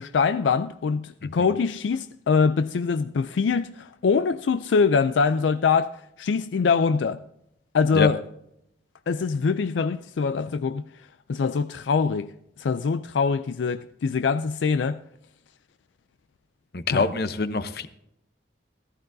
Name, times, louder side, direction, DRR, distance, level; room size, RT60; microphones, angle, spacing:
voice 1, 0.0-7.2 7.7-8.2 9.1-10.8 11.3-12.3 12.6-15.0 16.9-17.1, left 5 dB, 80° left, 0.4 m, -23 dB
voice 2, 16.7-17.9, left 3 dB, 55° left, 0.8 m, -25 dB
14.5 x 14.0 x 2.7 m
head